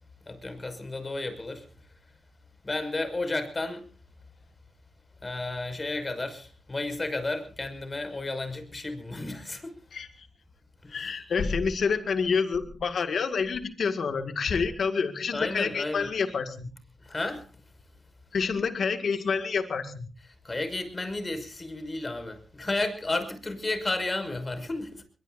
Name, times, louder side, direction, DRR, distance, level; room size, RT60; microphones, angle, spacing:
voice 1, 0.3-1.7 2.6-3.9 5.2-9.8 10.8-11.2 15.3-16.1 17.0-17.5 20.4-25.0, left 2 dB, 35° left, 5.7 m, -32 dB
voice 2, 10.9-16.7 18.3-20.1, left 5 dB, 70° left, 1.9 m, -28 dB
22.5 x 22.0 x 2.6 m
cardioid pair, 55°, 0 cm